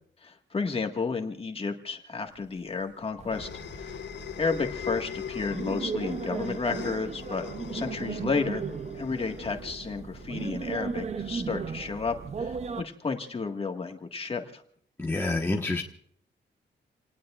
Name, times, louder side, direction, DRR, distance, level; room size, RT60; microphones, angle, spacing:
voice 1, 0.2-4.0 4.4-7.5 7.7-8.6 8.9-14.6, left 4 dB, 30° left, 4 dB, 1.8 m, -32 dB
sound 1, 2.4-11.2, left 9 dB, 70° left, 0.9 m, -41 dB
sound 2, 3.2-12.8, right 5 dB, 35° right, 0.7 m, -36 dB
voice 2, 15.0-15.8, left 2 dB, 10° left, 0 dB, 1.3 m, -27 dB
29.0 x 19.0 x 2.5 m, 0.62 s
wide cardioid pair, 165°, 19 cm